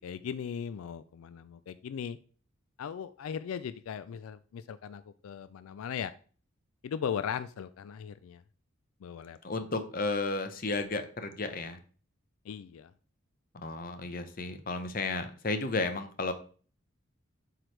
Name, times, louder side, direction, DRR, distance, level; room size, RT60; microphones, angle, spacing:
voice 1, 0.0-2.2 2.8-6.1 6.8-8.4 9.0-9.4 12.5-12.9, left 7 dB, 85° left, 14 dB, 0.3 m, -38 dB
voice 2, 9.4-11.8 13.5-16.3, left 3 dB, 40° left, 9 dB, 0.7 m, -33 dB
7.7 x 4.7 x 3.2 m, 0.41 s
head